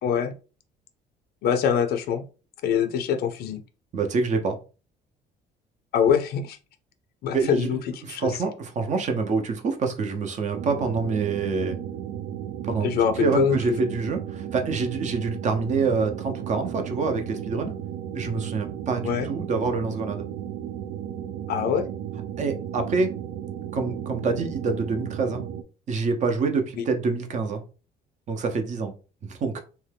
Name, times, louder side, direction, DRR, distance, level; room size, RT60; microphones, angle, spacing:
voice 1, 0.0-0.3 1.4-2.2 2.6-3.6 5.9-6.6 7.2-8.3 12.8-13.6 19.0-19.3 21.5-21.9, left 7 dB, 70° left, 0.5 m, -24 dB
voice 2, 3.9-4.6 7.3-11.8 12.6-12.9 13.2-17.8 18.1-20.3 22.4-23.1 23.7-25.4 25.9-27.6 28.3-28.9 29.3-29.6, right 4 dB, 45° right, 0.7 m, -26 dB
sound 1, 10.5-25.6, right 10 dB, 85° right, 0.4 m, -34 dB
2.6 x 2.3 x 3.3 m
cardioid pair, 110°, 17 cm